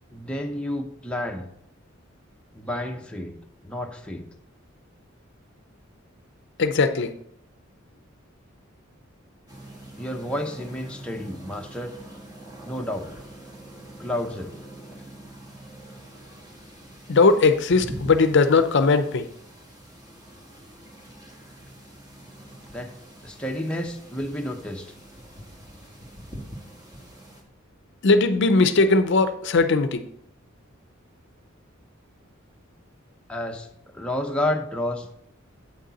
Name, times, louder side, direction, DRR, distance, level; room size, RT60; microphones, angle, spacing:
voice 1, 0.1-1.5 2.5-3.4 3.6-4.3 10.0-11.9 12.6-13.1 14.0-14.5 22.7-22.9 23.2-24.9 33.3-33.7 33.9-35.2, left 1 dB, 5° left, 2 dB, 0.7 m, -30 dB
voice 2, 6.6-7.1 17.1-19.3 28.0-30.0, left 3 dB, 60° left, 10 dB, 0.6 m, -19 dB
sound 1, 9.5-27.4, right 1 dB, 20° right, 1.6 m, -44 dB
8.3 x 6.5 x 4.1 m, 0.73 s
head